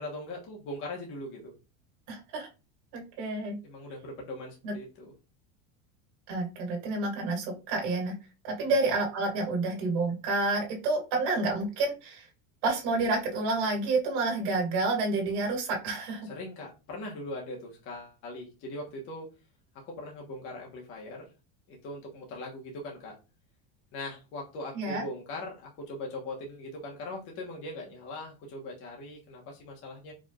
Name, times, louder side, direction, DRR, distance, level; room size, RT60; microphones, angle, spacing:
voice 1, 0.0-1.5 3.6-5.1 8.6-8.8 16.2-19.3 19.9-21.2 21.7-23.1 23.9-30.1, left 1 dB, 30° left, -1 dB, 1.2 m, -40 dB
voice 2, 2.1-2.5 2.9-3.6 4.6-4.7 6.3-8.1 8.4-12.3 12.6-16.3 24.7-25.0, right 3 dB, 55° right, -1 dB, 2.0 m, -29 dB
4.9 x 3.5 x 2.4 m, 0.29 s
cardioid pair, 180°, 40 cm